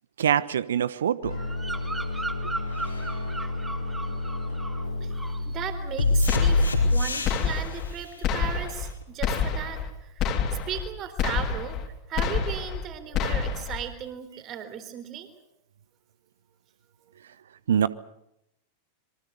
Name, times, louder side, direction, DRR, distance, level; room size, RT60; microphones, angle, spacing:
voice 1, 0.2-1.4 17.7-17.9, right 9 dB, 65° right, 16 dB, 1.0 m, -24 dB
sound 1, 1.2-7.5 9.0-9.1, left 2 dB, 75° left, 4.5 m, -27 dB
Bird vocalization bird call bird song, 1.3-4.9 5.1-5.5, right 2 dB, 10° right, 2.3 m, -37 dB
voice 2, 5.5-15.4, right 9 dB, 35° right, 10 dB, 3.9 m, -37 dB
sound 2, 6.3-7.0 7.2-7.9 8.2-8.9 9.2-9.9 10.2-10.9 11.2-11.9 12.2-12.9 13.1-13.8, left 6 dB, 35° left, 3.4 m, -28 dB
26.5 x 23.5 x 6.8 m, 0.80 s
figure-of-eight pair, 90°, 0 cm